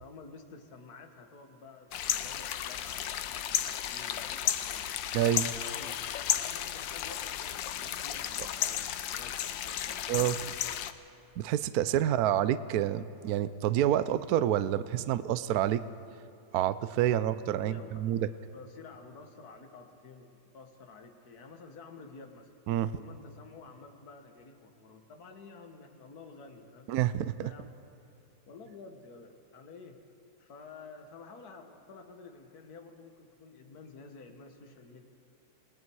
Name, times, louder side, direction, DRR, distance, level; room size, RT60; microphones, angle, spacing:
voice 1, 0.0-4.9 5.4-6.0 6.3-10.1 10.6-10.8 12.0-12.2 17.6-18.1 18.5-22.5 22.9-26.9 27.4-27.7 28.5-30.0 30.4-35.0, left 4 dB, 55° left, 5 dB, 2.0 m, -51 dB
sound 1, 1.9-10.9, left 10 dB, 80° left, 1.4 m, -33 dB
voice 2, 5.1-5.5 10.1-10.4 11.4-15.8 16.5-18.3 22.7-22.9 26.9-27.5, right 11 dB, 70° right, 14 dB, 0.9 m, -28 dB
28.5 x 19.5 x 4.7 m, 2.9 s
omnidirectional pair, 2.0 m